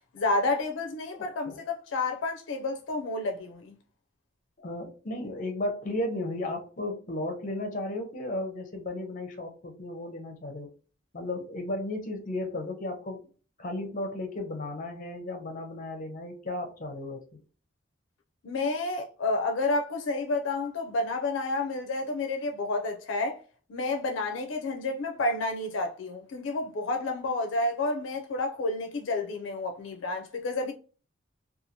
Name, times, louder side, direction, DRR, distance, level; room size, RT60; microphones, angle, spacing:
voice 1, 0.1-3.8 18.4-23.4 23.7-30.7, left 2 dB, 80° left, 0.4 m, -30 dB
voice 2, 4.6-10.7 11.1-13.2 13.6-17.4, left 1 dB, 45° left, 0.7 m, -34 dB
2.8 x 2.4 x 2.6 m
head